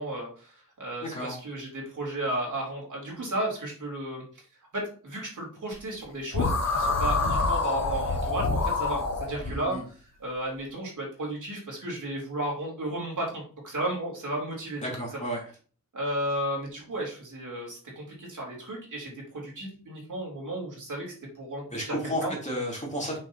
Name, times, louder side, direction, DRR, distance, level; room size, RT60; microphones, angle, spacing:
voice 1, 0.0-4.2 4.7-9.0 9.3-14.8 15.1-15.2 15.9-19.1 19.4-22.3, right 1 dB, 60° right, -2 dB, 3.3 m, -34 dB
voice 2, 1.0-1.3 9.4-9.8 14.8-15.4 21.7-23.2, equal, 20° left, -3 dB, 3.2 m, -32 dB
sound 1, 6.3-9.5, left 3 dB, 50° left, 1.3 m, -26 dB
6.5 x 6.3 x 2.9 m, 0.41 s
wide cardioid pair, 90°, 35 cm